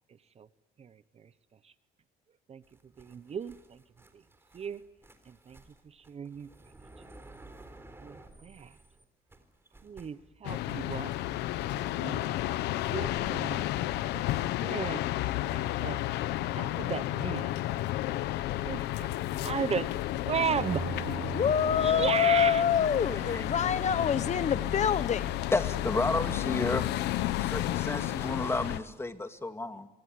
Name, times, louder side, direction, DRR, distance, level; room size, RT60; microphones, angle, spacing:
voice 1, 0.8-1.3 1.6-1.7 2.5-2.6 3.0-3.8 4.1-4.2 4.5-4.8 5.3-6.5 8.0-8.8 9.8-11.1 11.7-12.3 12.8-13.6 14.1-15.0 15.5-16.0 16.5-17.5 18.5-19.1 19.4-20.8 21.8-22.6 26.6-26.7, right 7 dB, 40° right, 1.1 m, -35 dB
sound 1, 2.6-9.0 9.3-13.4, right 2 dB, 15° right, 3.8 m, -54 dB
sound 2, 10.4-28.8, left 15 dB, 85° left, 1.1 m, -32 dB
sound 3, 20.6-27.0, right 8 dB, 70° right, 3.6 m, -42 dB
voice 2, 21.3-25.4, left 8 dB, 45° left, 1.1 m, -26 dB
voice 3, 25.5-26.9 27.4-29.9, left 2 dB, 15° left, 2.3 m, -31 dB
25.0 x 24.0 x 9.5 m
cardioid pair, 110°, 17 cm